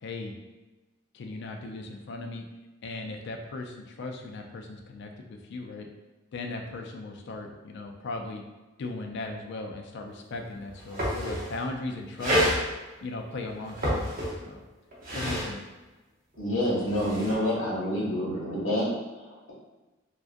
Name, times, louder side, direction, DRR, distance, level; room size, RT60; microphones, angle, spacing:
voice 1, 0.0-0.3 1.1-2.5 2.8-5.9 6.3-8.4 8.8-12.4 13.0-14.1 14.4-14.7 15.1-15.6, left 3 dB, 60° left, 3 dB, 0.3 m, -37 dB
sound 1, 10.3-10.4 10.7-11.6 12.2-12.6 13.6-14.5 14.9-15.5 16.7-17.3, equal, 45° right, 0.6 m, -28 dB
voice 2, 16.4-19.5, equal, 75° left, -5 dB, 0.9 m, -28 dB
2.4 x 2.1 x 2.5 m, 1.1 s
head